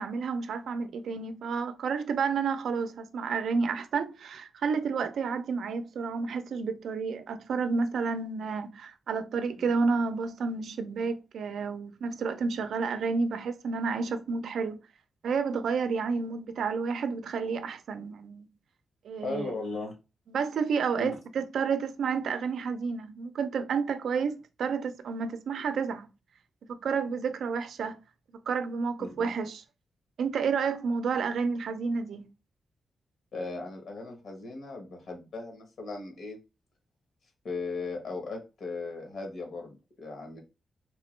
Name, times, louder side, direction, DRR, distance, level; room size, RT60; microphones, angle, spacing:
voice 1, 0.0-14.8 15.2-18.5 19.0-19.5 20.3-26.1 26.7-28.0 28.3-29.6 30.2-32.3, right 5 dB, 80° right, 0.4 m, -30 dB
voice 2, 19.2-19.9 20.9-21.2 29.0-29.3 33.3-36.4 37.4-40.4, left 3 dB, 60° left, 1.3 m, -37 dB
3.6 x 2.9 x 3.1 m
wide cardioid pair, 160°, 0 cm